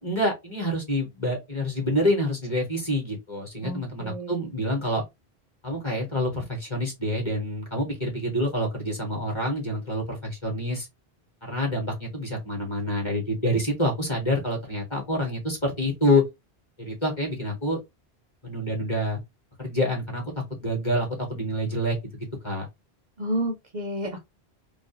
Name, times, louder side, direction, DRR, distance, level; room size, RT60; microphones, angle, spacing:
voice 1, 0.0-5.0 5.6-10.9 11.4-16.2 16.8-17.8 18.4-19.2 19.6-20.2 20.6-22.0 22.4-22.6, left 1 dB, 30° left, 1.0 m, -27 dB
voice 2, 3.6-4.3 23.2-24.2, right 1 dB, 55° right, 0.5 m, -30 dB
2.3 x 2.1 x 2.8 m
omnidirectional pair, 1.0 m